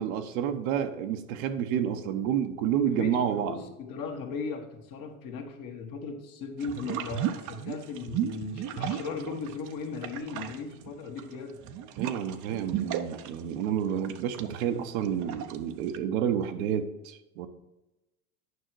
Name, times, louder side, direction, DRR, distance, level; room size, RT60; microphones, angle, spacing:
voice 1, 0.0-3.6 12.0-17.5, right 9 dB, 65° right, 7 dB, 1.0 m, -29 dB
voice 2, 2.9-11.6, left 5 dB, 45° left, 3 dB, 1.6 m, -37 dB
sound 1, 6.6-9.7 10.0-16.0, right 10 dB, 40° right, 0.7 m, -35 dB
9.5 x 5.6 x 4.6 m, 1.0 s
hypercardioid pair, 100°, 44 cm